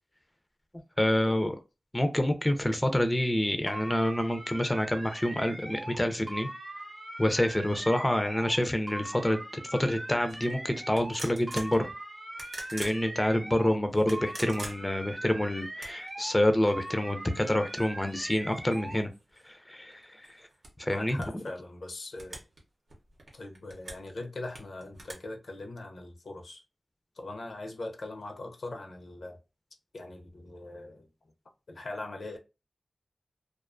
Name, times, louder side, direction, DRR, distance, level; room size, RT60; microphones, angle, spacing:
voice 1, 1.0-1.5 1.9-6.5 7.2-11.9 12.7-19.1 19.4-20.5 20.8-21.2, left 1 dB, 15° left, 0.3 m, -27 dB
sound 1, 3.7-6.0 6.3-8.6 8.9-11.2 11.5-13.8 14.1-16.4 16.7-19.0, right 1 dB, 35° right, 0.6 m, -41 dB
sound 2, 10.3-10.5 10.9-11.8 12.3-13.0 13.9-15.1 15.7-16.1 16.8-16.9 17.3-19.5 19.9-21.5 22.1-22.6 22.9-24.1 24.5-25.1, right 2 dB, 85° right, 0.8 m, -44 dB
voice 2, 20.9-22.4 23.3-26.6 27.2-29.4 29.9-31.1 31.7-32.4, left 2 dB, 75° left, 0.4 m, -41 dB
2.4 x 2.2 x 2.4 m
wide cardioid pair, 75°, 0 cm